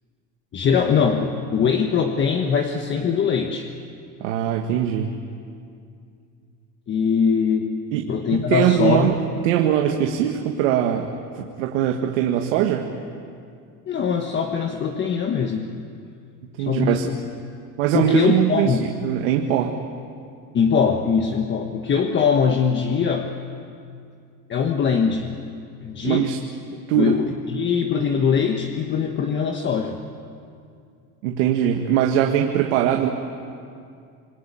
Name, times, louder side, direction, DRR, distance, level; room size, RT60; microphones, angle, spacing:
voice 1, 0.5-3.7 6.9-7.7 8.1-9.3 13.9-15.7 16.6-17.2 17.9-18.9 20.5-23.3 24.5-25.4 25.8-26.3 26.7-30.0, left 6 dB, 30° left, 4 dB, 1.4 m, -22 dB
voice 2, 4.2-5.2 7.9-9.2 9.4-12.9 16.6-17.1 17.8-19.7 26.0-26.4 26.9-27.2 31.2-33.1, right 10 dB, 90° right, 3 dB, 1.8 m, -21 dB
27.0 x 21.5 x 9.1 m, 2.3 s
cardioid pair, 140°, 37 cm